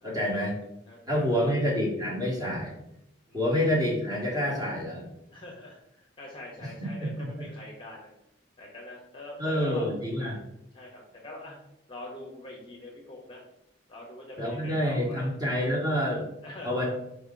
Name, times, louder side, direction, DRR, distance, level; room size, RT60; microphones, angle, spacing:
voice 1, 0.0-0.6 1.1-2.8 3.3-5.0 6.6-7.4 9.4-10.4 14.4-16.2 16.6-16.9, equal, 20° right, -4 dB, 1.1 m, -28 dB
voice 2, 0.9-1.4 3.3-3.4 5.3-8.1 8.6-10.3 10.7-11.6 11.9-13.4 13.9-15.3 16.4-16.8, left 2 dB, 25° left, -1 dB, 0.8 m, -44 dB
4.5 x 2.8 x 3.6 m, 0.82 s
head